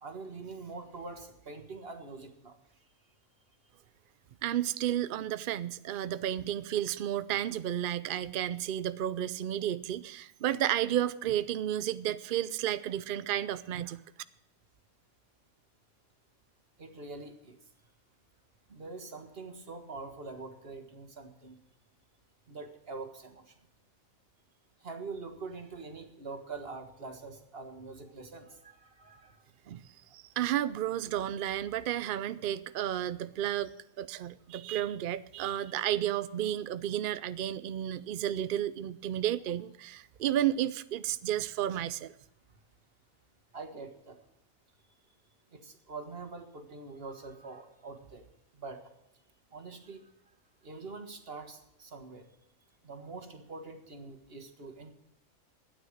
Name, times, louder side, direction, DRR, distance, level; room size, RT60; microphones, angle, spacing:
voice 1, 0.0-2.6 16.8-17.6 18.7-21.6 22.5-23.5 24.8-29.4 43.5-44.2 45.5-48.2 48.5-48.8 49.5-50.1 50.6-52.3 52.8-54.9, right 3 dB, 40° right, 1.7 m, -44 dB
voice 2, 4.4-14.0 29.7-29.8 30.1-33.7 34.0-42.1, right 11 dB, 85° right, 0.4 m, -32 dB
13.0 x 9.3 x 6.5 m
omnidirectional pair, 1.5 m